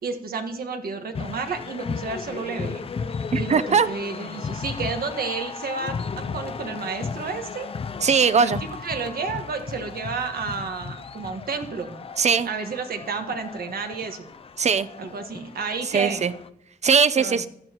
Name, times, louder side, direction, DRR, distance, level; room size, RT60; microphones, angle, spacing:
voice 1, 0.0-2.9 3.3-7.7 8.4-8.6 8.8-12.0 12.4-14.3 15.0-16.3 17.2-17.4, right 4 dB, 75° right, 6 dB, 1.5 m, -31 dB
sound 1, 1.1-16.5, left 5 dB, 40° left, 0.4 m, -35 dB
voice 2, 3.3-3.9 8.0-8.6 12.2-12.5 14.6-14.9 15.9-16.3 16.8-17.5, right 6 dB, 45° right, 15 dB, 0.6 m, -20 dB
15.5 x 11.5 x 3.0 m, 0.73 s
wide cardioid pair, 130°, 16 cm